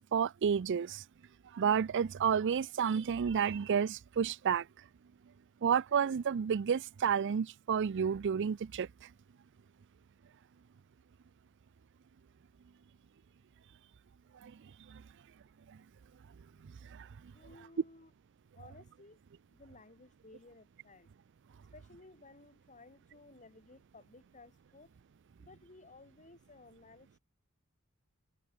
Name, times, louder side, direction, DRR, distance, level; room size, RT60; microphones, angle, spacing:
voice 1, 0.1-1.0 1.5-4.7 5.6-8.9 14.4-14.5 14.9-15.0 16.8-17.1, right 7 dB, 55° right, 0.4 m, -30 dB
voice 2, 17.3-18.1 18.5-19.2 19.5-21.1 21.7-24.9 25.4-27.2, left 3 dB, 35° left, 3.2 m, -57 dB
head